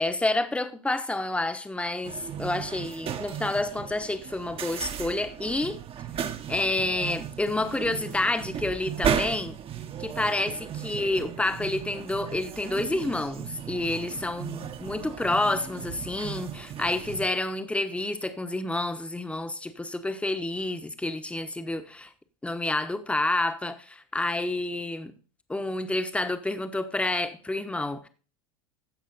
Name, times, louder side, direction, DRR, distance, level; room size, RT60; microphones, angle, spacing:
voice 1, 0.0-5.8 6.5-9.6 10.0-22.1 22.4-25.1 25.5-28.1, left 2 dB, 5° left, 1.1 m, -29 dB
sound 1, 2.0-17.3, right 8 dB, 35° right, 1.1 m, -35 dB
15.5 x 6.1 x 4.1 m
hypercardioid pair, 90°, 17 cm